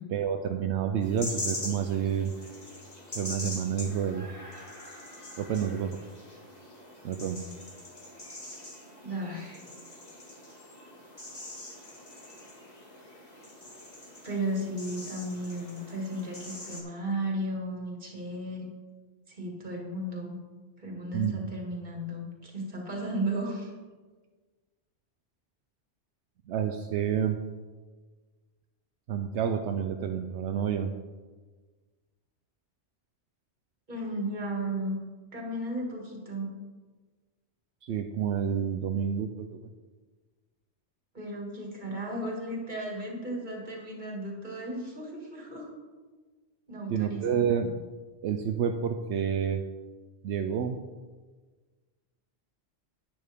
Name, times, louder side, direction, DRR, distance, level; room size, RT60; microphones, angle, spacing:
voice 1, 0.1-2.3 3.1-4.3 5.4-5.9 7.0-7.4 21.1-21.4 26.5-27.4 29.1-30.9 37.8-39.7 46.9-47.8 48.2-49.6 50.2-50.8, right 8 dB, 80° right, 5 dB, 0.9 m, -29 dB
sound 1, 1.0-16.8, left 1 dB, 35° left, 2.0 m, -43 dB
voice 2, 9.0-9.6 14.2-18.7 19.3-20.4 20.8-23.7 33.9-35.0 35.3-36.5 41.1-45.7 46.7-47.3, right 1 dB, 45° right, -1 dB, 2.3 m, -34 dB
11.0 x 9.0 x 3.5 m, 1.4 s
omnidirectional pair, 1.1 m